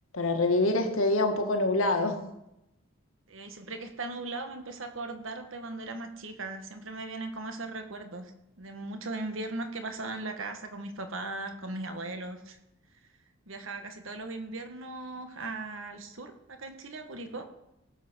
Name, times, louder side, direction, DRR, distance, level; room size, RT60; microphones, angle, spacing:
voice 1, 0.1-2.2, left 2 dB, 75° left, 4 dB, 2.0 m, -25 dB
voice 2, 3.3-8.3 8.6-12.6 13.5-17.5, right 2 dB, 65° right, 7 dB, 1.7 m, -38 dB
18.0 x 7.6 x 6.3 m, 0.88 s
head